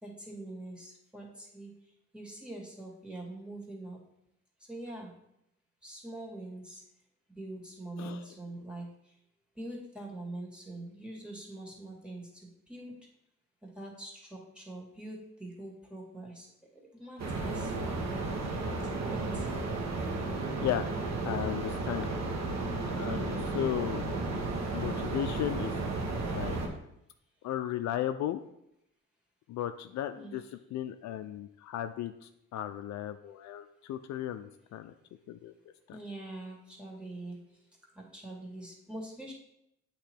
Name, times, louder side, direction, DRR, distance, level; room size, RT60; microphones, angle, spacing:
voice 1, 0.0-4.0 4.6-5.1 5.8-6.8 7.4-9.2 9.6-13.0 13.6-17.7 18.9-19.5 23.0-23.6 30.1-30.4 35.9-37.7 38.0-39.3, right 1 dB, 5° right, -2 dB, 1.9 m, -44 dB
voice 2, 8.0-8.3 20.6-20.9 21.2-22.1 22.9-24.1 24.7-25.8 26.3-26.6 27.4-28.4 29.5-34.9 35.3-35.5 35.9-36.0, left 11 dB, 65° left, 9 dB, 0.4 m, -35 dB
sound 1, 17.2-26.7, right 3 dB, 60° right, 1.2 m, -33 dB
8.3 x 3.0 x 4.5 m, 0.80 s
cardioid pair, 90°, 30 cm